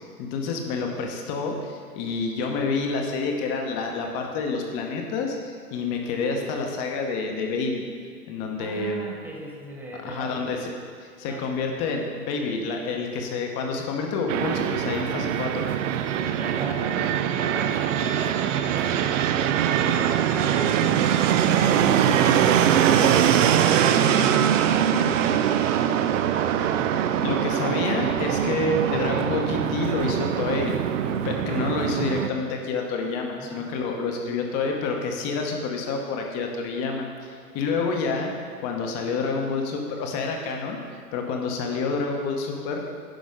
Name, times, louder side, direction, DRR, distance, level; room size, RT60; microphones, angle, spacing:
voice 1, 0.0-7.8 8.3-9.0 10.0-10.6 11.0-15.7 27.2-30.7 31.2-40.8 41.1-42.9, left 4 dB, 35° left, 2 dB, 1.1 m, -28 dB
voice 2, 8.6-10.5 11.2-11.4 16.4-21.0 33.4-33.8, right 1 dB, 5° right, -2 dB, 0.7 m, -39 dB
Fixed-wing aircraft airplane, 14.3-32.3, right 9 dB, 55° right, 0.5 m, -22 dB
10.0 x 5.0 x 3.7 m, 2.1 s
hypercardioid pair, 115°, 48 cm